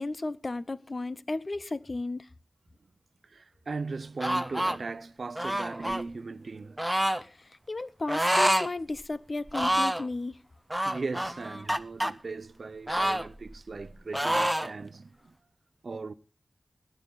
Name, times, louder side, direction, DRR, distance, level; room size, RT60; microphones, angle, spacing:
voice 1, 0.0-2.3 7.2-10.4, left 2 dB, 45° left, 0.6 m, -34 dB
voice 2, 3.3-6.9 10.8-15.2 15.8-16.1, right 4 dB, 70° right, 0.7 m, -38 dB
sound 1, 4.2-4.8 5.4-6.0 6.8-7.2 8.1-8.7 9.0-9.1 9.5-10.1 10.7-12.1 12.9-13.9 14.1-14.7, right 1 dB, 10° right, 0.7 m, -27 dB
20.0 x 9.1 x 4.0 m
wide cardioid pair, 80°, 0 cm